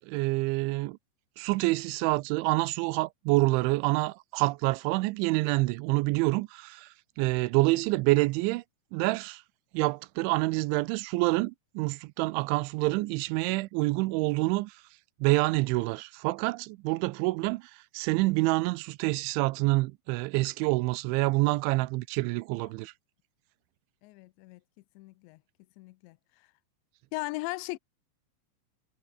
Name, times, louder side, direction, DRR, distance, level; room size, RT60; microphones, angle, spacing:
voice 1, 0.0-1.0 1.4-8.6 8.9-9.4 9.7-14.8 15.2-22.9, right 22 dB, 85° right, 3.0 m, -27 dB
voice 2, 24.0-24.6 25.0-25.4 25.8-26.2 27.1-27.8, left 22 dB, 80° left, 2.9 m, -37 dB
omnidirectional pair, 5.4 m